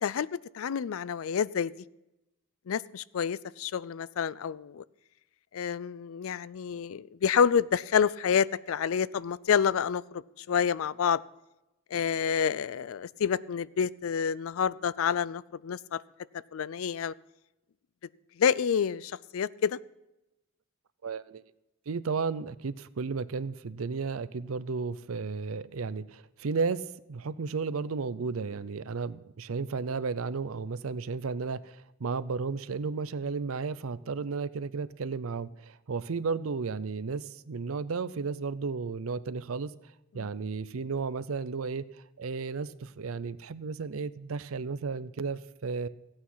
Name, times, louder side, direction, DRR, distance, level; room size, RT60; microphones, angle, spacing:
voice 1, 0.0-1.7 2.7-4.8 5.5-11.2 11.9-16.0 16.5-17.1 18.4-19.8 40.2-40.3, left 7 dB, 75° left, 20 dB, 0.4 m, -28 dB
voice 2, 21.0-21.4 21.9-39.7 40.1-41.9 42.2-45.9, right 4 dB, 80° right, 16 dB, 0.6 m, -33 dB
16.0 x 8.8 x 5.6 m, 0.94 s
head